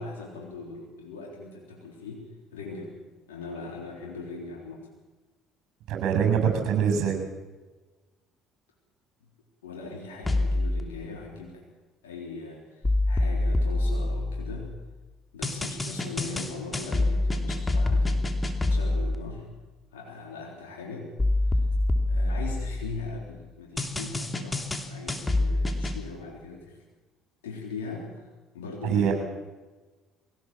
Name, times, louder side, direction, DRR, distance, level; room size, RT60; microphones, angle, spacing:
voice 1, 0.0-2.2 2.5-2.9 3.3-4.9 9.6-11.6 12.0-14.7 15.3-18.2 18.5-19.5 19.9-21.1 21.4-21.6 22.1-26.8 27.4-28.3 28.5-29.1, left 4 dB, 85° left, -1 dB, 3.7 m, -40 dB
voice 2, 5.9-7.2 28.8-29.1, right 7 dB, 65° right, 5 dB, 7.3 m, -24 dB
sound 1, 10.2-10.8 12.8-14.7 15.4-19.2 21.2-23.1 23.8-26.0, left 2 dB, 20° left, 3.0 m, -26 dB
23.5 x 17.0 x 7.4 m, 1.2 s
hypercardioid pair, 60°, 0 cm